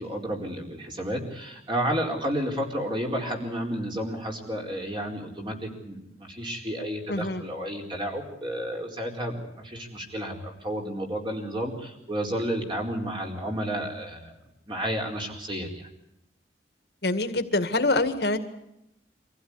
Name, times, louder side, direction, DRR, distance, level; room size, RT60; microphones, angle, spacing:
voice 1, 0.0-14.3 14.7-15.9, equal, 25° right, 1 dB, 4.5 m, -31 dB
voice 2, 7.1-7.4 17.0-18.4, left 2 dB, 65° left, 8 dB, 2.1 m, -25 dB
25.0 x 16.0 x 9.8 m, 0.82 s
head